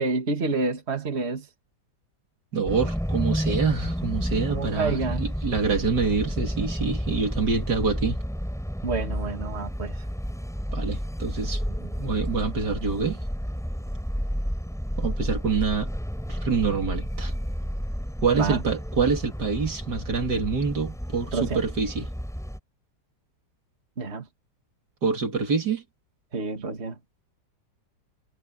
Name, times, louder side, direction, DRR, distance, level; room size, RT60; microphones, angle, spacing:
voice 1, 0.0-1.5 4.5-5.2 8.8-10.0 18.3-18.6 21.3-21.6 24.0-24.2 26.3-26.9, right 3 dB, 35° right, 2.3 m, -28 dB
voice 2, 2.5-8.2 10.7-13.2 15.0-15.9 16.3-17.3 18.2-22.1 25.0-25.8, right 5 dB, 65° right, 3.2 m, -26 dB
sound 1, 2.7-22.6, equal, ahead, 4.6 m, -31 dB
omnidirectional pair, 1.9 m